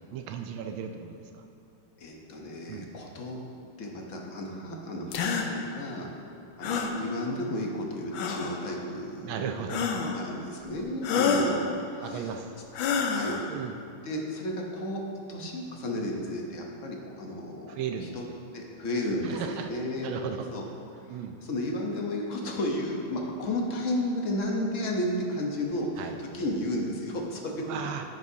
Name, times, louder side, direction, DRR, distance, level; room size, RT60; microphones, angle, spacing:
voice 1, 0.1-1.4 2.7-2.9 6.0-6.2 9.2-9.9 12.0-12.5 13.5-13.8 17.7-18.4 19.2-19.7 20.0-20.5 21.1-21.4 26.0-26.2 27.6-28.0, right 7 dB, 85° right, 5 dB, 1.4 m, -36 dB
voice 2, 2.0-3.4 3.8-6.1 6.6-9.5 10.0-12.3 13.1-13.4 14.0-15.0 15.3-17.7 18.0-18.2 18.5-20.1 20.5-20.6 21.0-27.5, left 1 dB, 50° left, 0 dB, 1.0 m, -33 dB
sound 1, 5.1-5.5 6.6-7.0 8.1-8.6 9.7-10.2 11.0-11.6 12.7-13.4, left 5 dB, 75° left, 1.4 m, -27 dB
10.5 x 9.4 x 2.7 m, 2.6 s
omnidirectional pair, 2.2 m